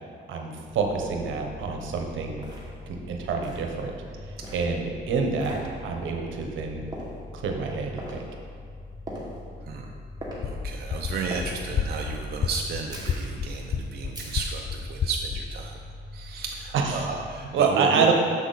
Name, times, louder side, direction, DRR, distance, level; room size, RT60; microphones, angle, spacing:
voice 1, 0.3-2.4 2.9-3.9 4.3-6.8 7.3-8.2 16.7-17.1 17.5-18.1, right 5 dB, 75° right, 2 dB, 1.0 m, -27 dB
sound 1, 0.6-17.4, left 2 dB, 15° left, 1.3 m, -43 dB
sound 2, 1.7-1.8 2.4-2.7 3.4-3.7 4.4-4.7 5.4-5.6 6.9-7.2 8.0-8.2 9.1-9.4 10.2-10.4 11.3-11.5 12.9-13.3 14.1-14.6, right 1 dB, 20° right, 1.9 m, -39 dB
sound 3, 10.3-15.6, left 6 dB, 35° left, 0.3 m, -31 dB
voice 2, 10.4-15.8 16.1-18.1, right 5 dB, 55° right, 1 dB, 0.6 m, -33 dB
7.0 x 6.1 x 4.0 m, 2.1 s
cardioid pair, 90°, 20 cm